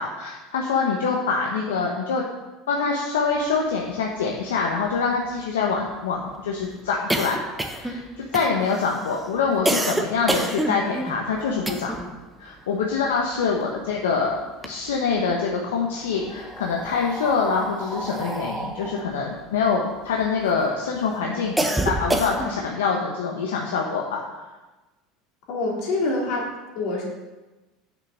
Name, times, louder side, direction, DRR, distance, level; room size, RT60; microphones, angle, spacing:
voice 1, 0.0-2.2 2.7-7.4 7.8-11.9 12.4-14.4 14.6-21.6 21.8-24.2, left 5 dB, 80° left, -1 dB, 1.1 m, -25 dB
sound 1, 4.0-4.1 4.3-4.4 4.7-12.2 12.5-14.0 14.4-15.3 16.1-20.6 21.0-22.7, right 1 dB, 5° right, 1.0 m, -29 dB
voice 2, 25.5-27.0, left 2 dB, 60° left, -2 dB, 3.2 m, -26 dB
6.8 x 6.5 x 6.7 m, 1.1 s
hypercardioid pair, 80°, 0 cm